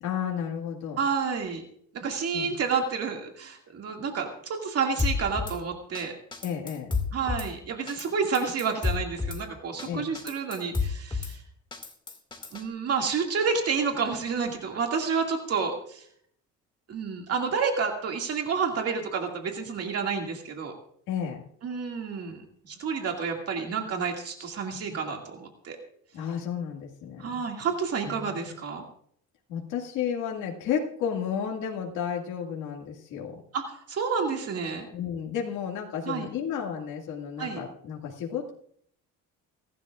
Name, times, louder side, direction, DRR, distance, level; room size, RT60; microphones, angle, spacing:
voice 1, 0.0-1.0 2.3-2.5 6.4-6.9 9.8-10.0 21.1-21.4 26.1-27.4 28.0-28.5 29.5-33.4 34.9-38.5, left 8 dB, 75° left, -1 dB, 2.2 m, -32 dB
voice 2, 1.0-1.6 1.9-6.1 7.1-11.4 12.5-16.0 16.9-20.7 21.6-25.8 27.2-28.8 33.5-34.9 36.1-36.3 37.4-37.6, right 5 dB, 50° right, 2 dB, 2.3 m, -29 dB
Drum kit / Snare drum, 5.0-5.6 5.9-6.0 6.3-7.5 7.9-8.1 8.3-9.4 9.8-9.9 10.1-11.3 11.7-12.6, left 4 dB, 15° left, 2.1 m, -30 dB
29.0 x 12.0 x 2.5 m, 0.63 s
cardioid pair, 120°, 31 cm